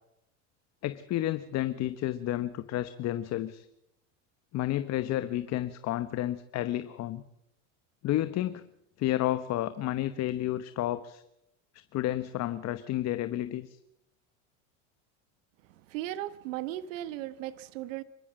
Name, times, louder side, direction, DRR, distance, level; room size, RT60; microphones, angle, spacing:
voice 1, 0.8-3.7 4.5-7.2 8.0-8.6 9.0-11.2 11.9-13.8, left 13 dB, 40° left, 1.1 m, -31 dB
voice 2, 15.9-18.0, right 14 dB, 80° right, 1.3 m, -36 dB
25.5 x 13.5 x 7.6 m
supercardioid pair, 115°, 38 cm